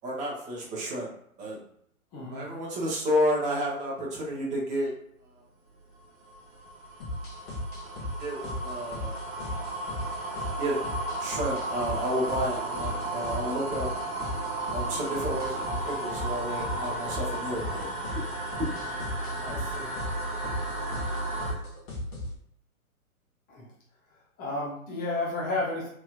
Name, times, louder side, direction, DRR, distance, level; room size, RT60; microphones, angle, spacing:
voice 1, 0.0-1.1 1.4-1.6 2.3-4.9 5.3-5.4 8.2-9.7 10.6-10.8 11.2-13.9 14.7-17.9 18.6-18.7, equal, 15° right, -4 dB, 0.8 m, -31 dB
voice 2, 2.1-2.5 19.4-20.0 23.5-23.7 24.4-25.9, left 2 dB, 20° left, -4 dB, 0.8 m, -32 dB
sound 1, 5.9-21.5, right 2 dB, 45° right, 1.2 m, -34 dB
sound 2, 7.0-22.4, left 1 dB, 45° left, 1.2 m, -37 dB
3.3 x 2.8 x 2.4 m, 0.68 s
figure-of-eight pair, 115°, 43 cm